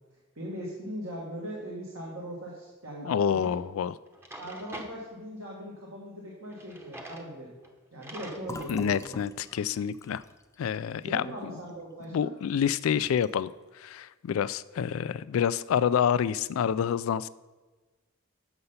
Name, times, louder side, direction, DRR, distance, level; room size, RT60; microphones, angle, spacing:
voice 1, 0.4-3.5 4.4-7.5 7.9-9.2 11.1-12.3, equal, 75° right, -4 dB, 1.8 m, -40 dB
voice 2, 3.0-3.9 8.7-10.2 10.6-11.5 12.1-17.3, left 8 dB, 75° left, 17 dB, 0.3 m, -28 dB
Drawer open or close, 3.4-3.6 4.1-4.9 6.5-7.3 7.6-7.7 8.0-8.7, right 1 dB, 10° right, 0.9 m, -44 dB
Fill (with liquid), 8.4-12.1 12.4-12.6 12.9-13.5, left 2 dB, 15° left, 0.5 m, -46 dB
8.0 x 6.8 x 5.6 m, 1.2 s
head